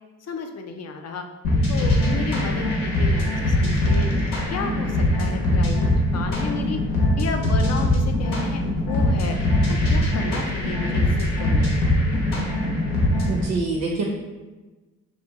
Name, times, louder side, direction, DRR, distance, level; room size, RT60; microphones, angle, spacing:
voice 1, 0.2-1.3 1.7-5.9 6.1-6.8 7.2-9.4 9.7-12.1, left 5 dB, 50° left, 5 dB, 0.4 m, -33 dB
sound 1, 1.4-13.5, left 1 dB, 85° left, 0.8 m, -22 dB
voice 2, 13.3-14.0, right 3 dB, 60° right, 0 dB, 0.5 m, -25 dB
2.7 x 2.3 x 2.6 m, 1.2 s
cardioid pair, 60°, 34 cm